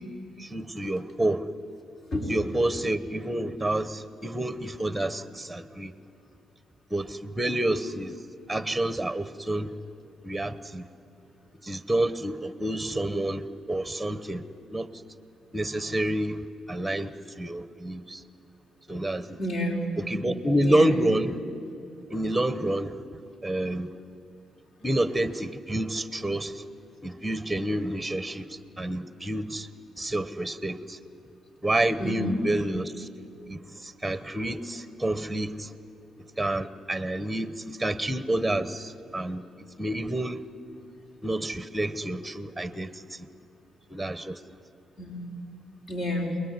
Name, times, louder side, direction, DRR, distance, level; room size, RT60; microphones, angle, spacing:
voice 1, 0.4-1.5 2.3-5.9 6.9-8.2 8.5-9.7 10.2-10.9 11.6-14.9 15.5-16.4 16.7-18.2 18.9-19.4 20.0-21.4 22.1-23.0 23.4-23.9 24.8-26.6 27.0-29.7 30.0-31.0 31.6-33.1 33.5-35.7 36.4-39.4 39.8-40.4 41.2-43.3 43.9-44.4, right 1 dB, 5° right, 1.1 m, -29 dB
voice 2, 19.4-19.9 20.6-21.0 32.0-32.4 45.0-45.3 45.9-46.4, left 1 dB, 55° left, 5.2 m, -30 dB
28.5 x 21.0 x 9.7 m
cardioid pair, 90°, 0 cm